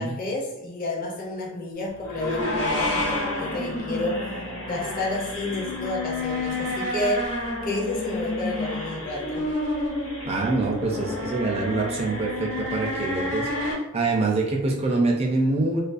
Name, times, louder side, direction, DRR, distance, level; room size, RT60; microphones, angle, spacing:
voice 1, 0.0-9.5 14.2-14.4, left 2 dB, 40° left, -2 dB, 0.5 m, -30 dB
sound 1, 2.0-13.7, left 1 dB, 70° left, 1.1 m, -29 dB
voice 2, 10.2-15.8, right 3 dB, 30° right, 0 dB, 0.4 m, -25 dB
2.4 x 2.2 x 2.4 m, 0.94 s
head